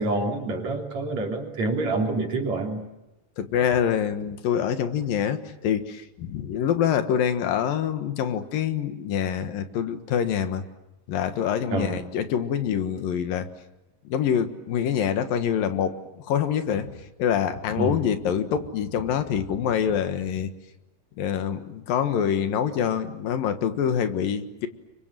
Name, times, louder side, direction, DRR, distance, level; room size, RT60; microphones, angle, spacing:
voice 1, 0.0-2.8 11.7-12.0 17.8-18.0, right 2 dB, 50° right, 2 dB, 4.5 m, -27 dB
voice 2, 3.4-10.6 11.1-13.5 14.0-16.9 17.2-20.5 21.2-24.7, left 8 dB, 75° left, 9 dB, 3.2 m, -25 dB
29.5 x 24.5 x 7.5 m, 0.96 s
omnidirectional pair, 4.1 m